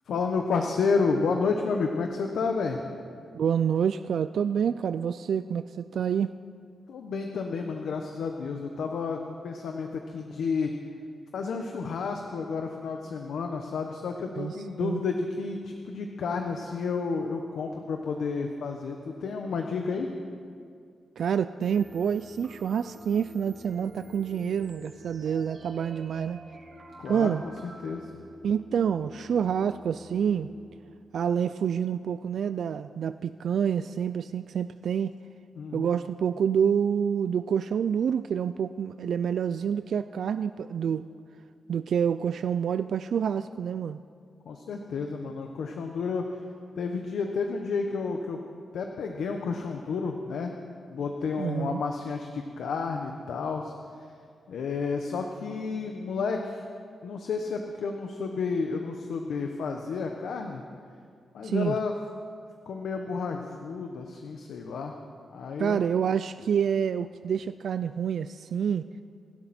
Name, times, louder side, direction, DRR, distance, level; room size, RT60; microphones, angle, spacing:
voice 1, 0.1-2.8 6.9-9.2 9.4-10.7 11.3-20.1 27.0-27.4 27.6-28.1 35.5-36.0 44.4-46.4 46.8-48.4 48.7-50.6 50.9-53.7 54.5-56.6 57.0-60.6 61.3-62.0 62.7-65.0 65.3-66.0, left 4 dB, 80° left, 3 dB, 1.1 m, -31 dB
voice 2, 3.3-6.3 14.4-14.5 14.8-15.0 21.2-26.4 27.1-27.4 28.4-30.5 31.1-35.1 35.7-41.1 41.7-44.0 51.4-51.8 61.4-61.8 65.6-68.8, right 8 dB, 70° right, 11 dB, 0.3 m, -27 dB
sound 1, 21.6-30.9, right 1 dB, 45° right, 2.7 m, -49 dB
27.5 x 12.5 x 4.3 m, 2.3 s
wide cardioid pair, 150°, 0 cm